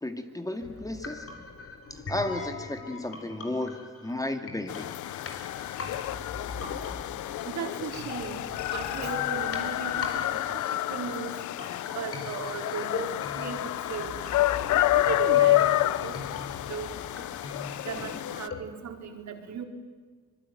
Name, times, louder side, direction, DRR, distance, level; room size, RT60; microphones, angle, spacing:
voice 1, 0.0-1.3 1.9-5.0, left 1 dB, 10° left, 7 dB, 2.3 m, -33 dB
sound 1, 0.6-18.6, left 4 dB, 50° left, 4.5 m, -41 dB
sound 2, 4.7-18.5, left 15 dB, 75° left, 0.8 m, -29 dB
voice 2, 7.5-8.4 8.7-10.6 10.9-11.3 11.9-13.1 13.4-14.1 14.9-16.1 16.7-16.9 17.8-19.6, right 7 dB, 65° right, 3 dB, 4.6 m, -36 dB
25.5 x 21.5 x 9.1 m, 1.5 s
cardioid pair, 90°, 30 cm